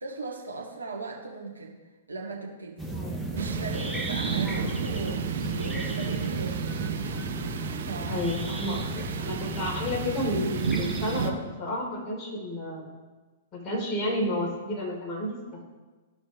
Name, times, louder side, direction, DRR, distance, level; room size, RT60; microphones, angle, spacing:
voice 1, 0.0-1.8 2.1-2.8 3.3-6.6 7.7-8.8, right 3 dB, 85° right, -2 dB, 1.8 m, -38 dB
sound 1, 2.8-11.3, right 2 dB, ahead, 1.0 m, -34 dB
voice 2, 2.9-3.3 4.4-4.9 8.1-11.3 11.6-12.9 13.5-15.6, left 1 dB, 25° left, -3 dB, 3.0 m, -31 dB
Thunder, 3.4-11.3, right 7 dB, 60° right, 0.7 m, -33 dB
15.0 x 5.3 x 3.1 m, 1.3 s
figure-of-eight pair, 110°, 0 cm